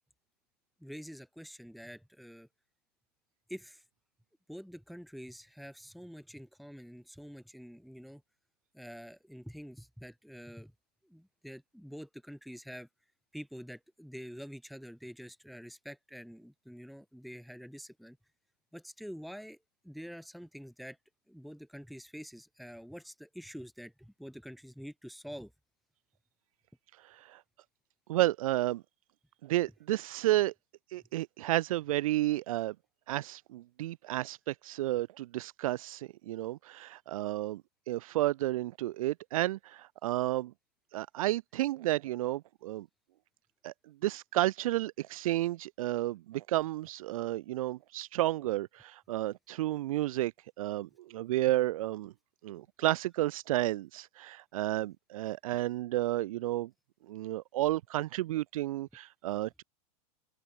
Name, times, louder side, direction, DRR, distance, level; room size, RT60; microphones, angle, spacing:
voice 1, 0.8-2.5 3.5-3.8 4.5-8.2 8.7-10.7 11.0-12.9 13.3-18.2 18.7-19.6 19.8-21.0 21.3-25.5, equal, ahead, 3.1 m, -47 dB
voice 2, 27.1-27.4 28.1-28.8 29.4-30.5 30.9-32.7 33.1-37.6 37.9-40.5 40.9-42.9 43.6-43.7 44.0-50.3 50.6-52.1 52.4-56.7 57.1-59.6, right 15 dB, 60° right, 0.8 m, -31 dB
open air
supercardioid pair, 165°, 21 cm